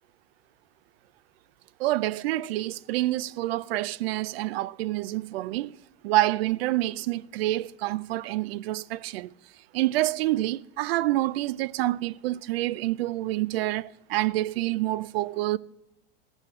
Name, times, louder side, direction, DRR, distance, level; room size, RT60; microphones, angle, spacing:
voice 1, 1.8-5.7 6.0-9.3 9.7-15.6, right 16 dB, 85° right, 0.5 m, -27 dB
15.5 x 6.4 x 8.4 m
supercardioid pair, 145°, 29 cm